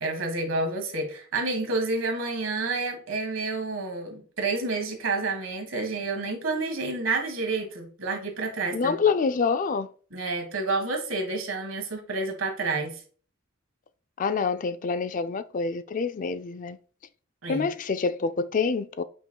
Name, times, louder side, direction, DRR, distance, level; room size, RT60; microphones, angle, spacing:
voice 1, 0.0-9.0 10.1-13.0 17.4-17.7, right 3 dB, 60° right, 1.6 m, -29 dB
voice 2, 8.7-9.9 14.2-16.8 17.5-19.0, left 5 dB, 40° left, 0.3 m, -26 dB
8.8 x 5.4 x 2.3 m
head